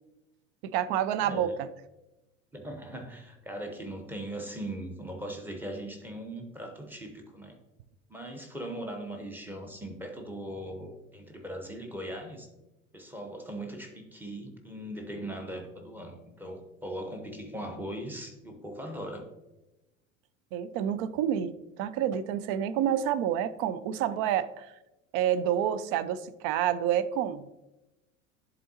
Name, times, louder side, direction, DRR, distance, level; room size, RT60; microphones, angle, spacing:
voice 1, 0.6-1.7 20.5-24.7 25.1-27.5, right 10 dB, 40° right, 14 dB, 0.4 m, -28 dB
voice 2, 1.1-1.6 2.5-7.6 8.1-12.5 12.9-19.2, right 1 dB, 5° right, 3 dB, 1.0 m, -39 dB
10.5 x 3.9 x 2.8 m, 0.98 s
figure-of-eight pair, 75°, 40 cm